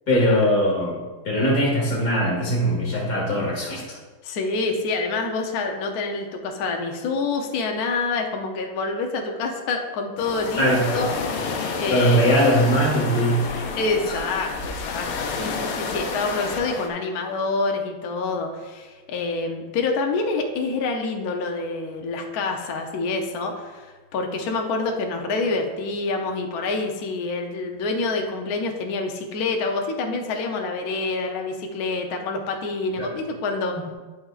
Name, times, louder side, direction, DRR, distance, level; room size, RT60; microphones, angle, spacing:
voice 1, 0.1-1.0 1.3-4.0 10.6-11.1 11.9-13.5 14.1-14.2 33.0-33.1, equal, 45° left, -3 dB, 2.1 m, -21 dB
voice 2, 4.2-12.4 13.8-23.9 24.1-33.8, left 3 dB, 65° left, 3 dB, 1.0 m, -27 dB
sound 1, 10.2-16.9, left 4 dB, 85° left, 1.7 m, -30 dB
11.0 x 5.1 x 2.4 m, 1.3 s
omnidirectional pair, 2.4 m